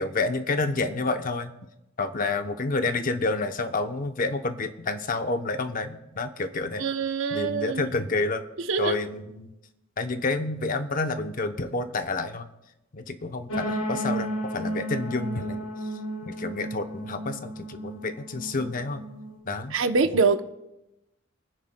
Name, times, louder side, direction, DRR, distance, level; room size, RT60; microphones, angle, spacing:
voice 1, 0.0-1.5 2.0-6.8 7.3-8.4 8.8-9.5 10.0-12.5 12.9-15.7 16.2-19.0 19.4-19.8, left 3 dB, 45° left, 8 dB, 0.8 m, -29 dB
voice 2, 6.8-7.9 8.7-9.0 19.7-20.4, right 4 dB, 70° right, 8 dB, 0.8 m, -24 dB
sound 1, 13.5-19.4, right 1 dB, 80° left, 2.6 m, -33 dB
28.5 x 9.8 x 2.2 m, 0.93 s
head